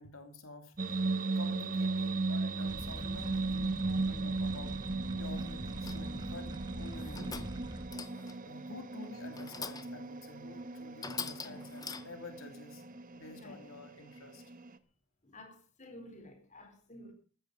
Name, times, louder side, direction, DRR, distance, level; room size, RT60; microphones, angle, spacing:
voice 1, 0.0-4.8 5.1-7.5 8.4-12.8 13.1-14.4, left 2 dB, 85° left, 2.9 m, -50 dB
sound 1, 0.8-14.8, right 3 dB, 40° right, 1.1 m, -37 dB
sound 2, 2.7-8.0, right 1 dB, 20° right, 1.2 m, -43 dB
sound 3, 5.8-6.2 6.9-7.6 7.9-8.5 9.3-10.0 10.5-10.6 11.0-12.3, left 5 dB, 20° left, 0.9 m, -43 dB
voice 2, 15.2-17.1, left 1 dB, 35° left, 3.9 m, -52 dB
15.5 x 14.5 x 5.1 m
head